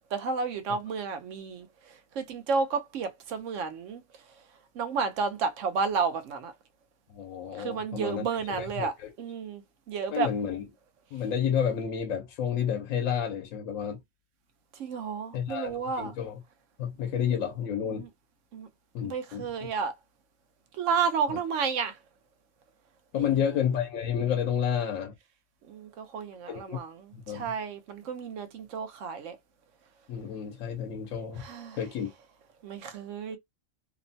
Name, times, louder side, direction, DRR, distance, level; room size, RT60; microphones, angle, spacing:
voice 1, 0.1-4.0 4.7-6.5 7.6-10.3 14.7-16.1 17.8-18.1 18.5-18.7 19.0-19.9 20.7-22.0 23.2-23.4 25.7-29.4 31.4-31.8 32.6-33.4, right 5 dB, 75° right, 1.0 m, -32 dB
voice 2, 7.1-8.2 8.6-9.1 10.1-10.6 11.1-14.0 15.3-16.4 16.8-18.1 18.9-19.7 21.3-21.4 23.1-25.1 26.5-26.8 27.1-27.5 30.1-31.5 31.7-32.1, left 8 dB, 90° left, 1.0 m, -30 dB
2.9 x 2.1 x 2.6 m
omnidirectional pair, 1.3 m